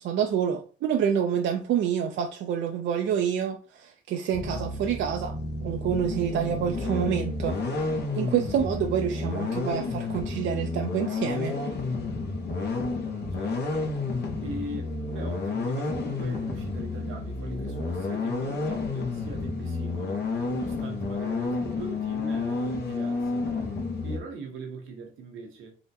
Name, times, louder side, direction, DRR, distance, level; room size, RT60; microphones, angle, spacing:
voice 1, 0.0-11.5, right 8 dB, 70° right, 0.4 m, -28 dB
sound 1, 4.3-24.2, left 3 dB, 55° left, 0.9 m, -30 dB
voice 2, 13.3-14.0 14.4-23.4 24.0-25.7, right 3 dB, 85° right, 0.9 m, -41 dB
3.7 x 2.1 x 2.6 m
cardioid pair, 90°, 20 cm